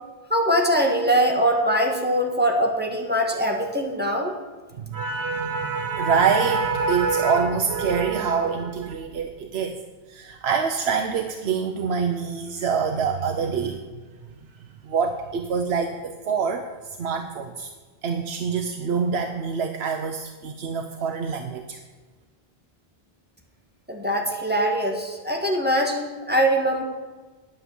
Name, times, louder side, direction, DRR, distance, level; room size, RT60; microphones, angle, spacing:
voice 1, 0.3-4.3 23.9-26.8, equal, 10° right, 1 dB, 1.6 m, -22 dB
voice 2, 4.8-9.8 10.1-13.8 14.9-16.7 17.0-17.7 18.0-21.8, right 5 dB, 85° right, 5 dB, 1.0 m, -25 dB
9.6 x 8.7 x 7.0 m, 1.4 s
omnidirectional pair, 1.0 m